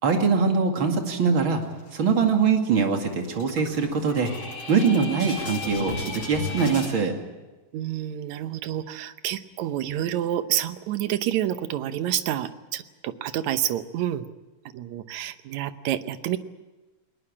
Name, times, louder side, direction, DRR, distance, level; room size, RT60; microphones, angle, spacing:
voice 1, 0.0-1.6 1.9-4.3 4.7-7.1, right 5 dB, 40° right, 4 dB, 2.8 m, -22 dB
sound 1, 1.6-2.4 2.7-2.9 3.2-6.9, left 3 dB, 70° left, 8.7 m, -37 dB
sound 2, 4.0-6.9, left 2 dB, 45° left, 7.1 m, -37 dB
voice 2, 7.7-14.3 14.7-16.4, right 11 dB, 70° right, 11 dB, 2.1 m, -28 dB
20.5 x 20.0 x 8.7 m, 1.2 s
omnidirectional pair, 3.7 m